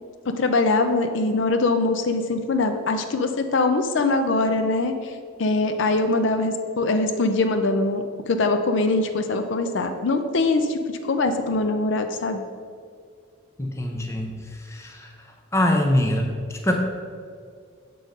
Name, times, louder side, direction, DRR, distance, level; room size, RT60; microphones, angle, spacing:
voice 1, 0.3-5.1 5.4-12.4, left 3 dB, 65° left, 7 dB, 0.5 m, -22 dB
voice 2, 13.6-14.3 14.7-15.1 15.5-16.3 16.6-16.7, left 1 dB, 15° left, 2 dB, 0.6 m, -23 dB
7.4 x 3.8 x 5.2 m, 2.1 s
head